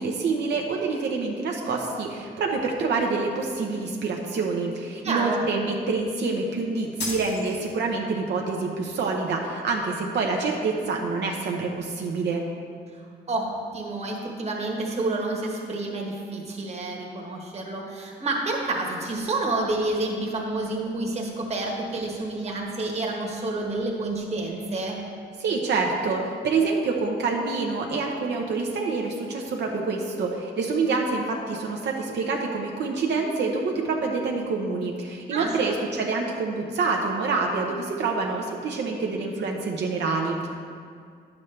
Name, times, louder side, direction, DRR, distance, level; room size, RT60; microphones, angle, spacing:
voice 1, 0.0-12.4 25.4-40.5, right 4 dB, 80° right, 0 dB, 0.8 m, -27 dB
voice 2, 5.0-5.4 12.9-25.0 35.3-35.7, right 2 dB, 35° right, -1 dB, 1.2 m, -29 dB
sound 1, 7.0-8.0, left 2 dB, 85° left, 2.1 m, -34 dB
10.5 x 7.3 x 3.3 m, 2.2 s
wide cardioid pair, 160°, 18 cm